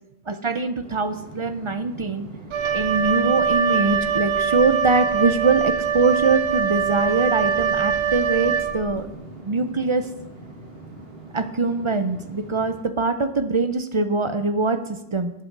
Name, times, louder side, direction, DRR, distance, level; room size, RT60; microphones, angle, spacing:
voice 1, 0.3-2.3 2.7-9.1 9.4-10.1 11.3-15.3, right 3 dB, 35° right, 10 dB, 0.5 m, -23 dB
sound 1, 0.8-12.8, right 2 dB, 70° right, 2.2 m, -42 dB
Wind instrument woodwind instrument, 2.5-9.1, right 7 dB, 85° right, 1.0 m, -23 dB
11.5 x 6.2 x 6.6 m, 0.88 s
omnidirectional pair, 1.0 m